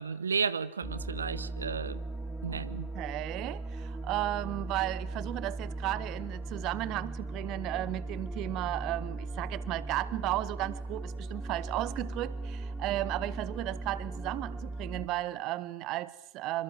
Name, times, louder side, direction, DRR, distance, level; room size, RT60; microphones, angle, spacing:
voice 1, 0.0-2.0 2.4-2.9, right 5 dB, 70° right, 1.1 m, -33 dB
sound 1, 0.8-15.1, right 2 dB, 5° right, 2.3 m, -38 dB
voice 2, 2.9-16.6, right 16 dB, 40° right, 0.9 m, -34 dB
27.5 x 26.0 x 7.7 m
figure-of-eight pair, 90°, 0 cm